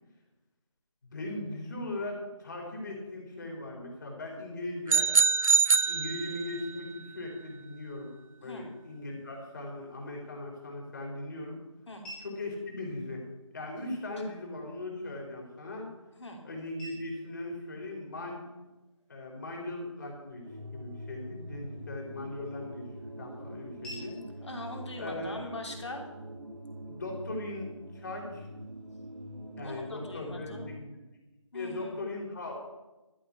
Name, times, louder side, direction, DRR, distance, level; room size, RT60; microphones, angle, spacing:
voice 1, 1.0-5.1 5.8-8.1 8.4-11.6 12.2-13.2 13.5-15.9 16.4-18.4 19.1-20.4 20.7-22.9 23.2-24.2 25.0-25.5 26.9-28.5 29.6-30.9 31.5-32.6, left 2 dB, 35° left, 0 dB, 3.7 m, -39 dB
sound 1, 4.9-6.7, right 4 dB, 90° right, 0.6 m, -24 dB
sound 2, 10.3-26.3, right 1 dB, 5° left, 1.9 m, -56 dB
sound 3, 20.4-30.8, equal, 65° right, 2.3 m, -44 dB
voice 2, 24.4-26.0 29.6-30.7 31.5-32.0, left 2 dB, 60° left, 2 dB, 3.2 m, -41 dB
13.0 x 6.4 x 8.5 m, 1.1 s
figure-of-eight pair, 165°, 17 cm